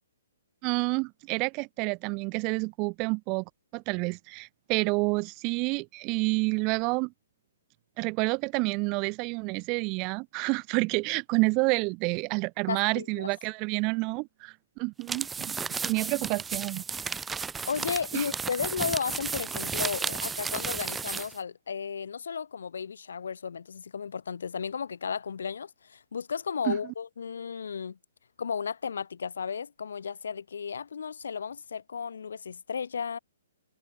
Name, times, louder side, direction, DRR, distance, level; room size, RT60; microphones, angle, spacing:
voice 1, 0.6-3.4 3.7-7.1 8.0-15.6 15.8-16.8 18.1-18.3 26.7-26.8, right 29 dB, 30° right, 2.7 m, -29 dB
voice 2, 12.7-13.3 17.7-28.0 28.4-33.2, left 6 dB, 60° left, 1.7 m, -34 dB
sound 1, 15.0-21.4, right 5 dB, 10° right, 0.6 m, -33 dB
figure-of-eight pair, 125°, 0 cm